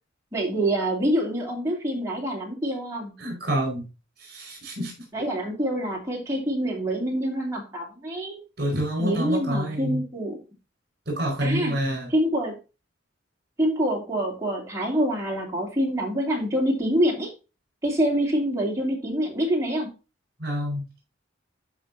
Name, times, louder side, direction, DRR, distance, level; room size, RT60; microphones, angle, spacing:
voice 1, 0.3-3.1 5.1-8.4 9.0-10.4 11.4-11.7 12.1-12.5 13.6-17.3 17.8-19.9, right 1 dB, 15° right, -2 dB, 2.7 m, -26 dB
voice 2, 3.2-3.9 4.2-5.1 8.6-10.0 11.1-12.1 20.4-20.8, equal, 55° right, 0 dB, 4.7 m, -27 dB
12.5 x 5.2 x 2.6 m, 0.30 s
head